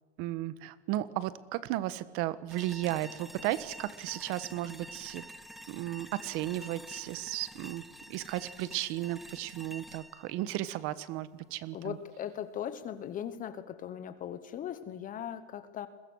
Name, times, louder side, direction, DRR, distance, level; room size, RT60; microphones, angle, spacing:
voice 1, 0.2-5.2 5.7-12.0, right 15 dB, 40° right, 15 dB, 1.3 m, -35 dB
sound 1, 2.5-11.5, equal, ahead, 0.7 m, -49 dB
voice 2, 11.7-15.9, left 9 dB, 25° left, 11 dB, 1.1 m, -39 dB
29.5 x 22.5 x 6.4 m, 1.4 s
supercardioid pair, 150°, 35 cm